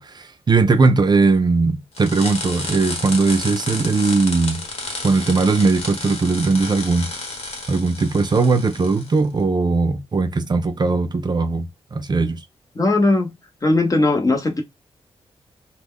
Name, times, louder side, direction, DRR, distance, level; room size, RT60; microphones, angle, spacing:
voice 1, 0.0-4.6 5.0-7.1 7.7-12.4, right 3 dB, 40° right, 0.5 m, -19 dB
sound 1, 1.9-9.2, left 3 dB, 70° left, 1.1 m, -31 dB
voice 2, 12.8-13.3 13.6-14.6, left 2 dB, 30° left, 0.8 m, -18 dB
2.1 x 2.1 x 3.5 m
cardioid pair, 65°, 11 cm